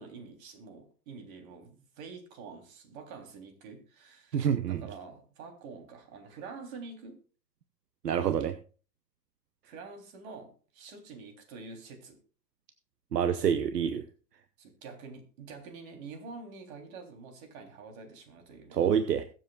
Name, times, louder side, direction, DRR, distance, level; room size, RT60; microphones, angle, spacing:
voice 1, 0.0-7.2 9.6-12.2 14.6-18.8, right 4 dB, 60° right, 4 dB, 3.4 m, -47 dB
voice 2, 4.3-4.8 8.0-8.6 13.1-14.0 18.7-19.2, right 8 dB, 85° right, 11 dB, 0.9 m, -27 dB
22.0 x 7.7 x 2.4 m, 0.38 s
hypercardioid pair, 95°, 47 cm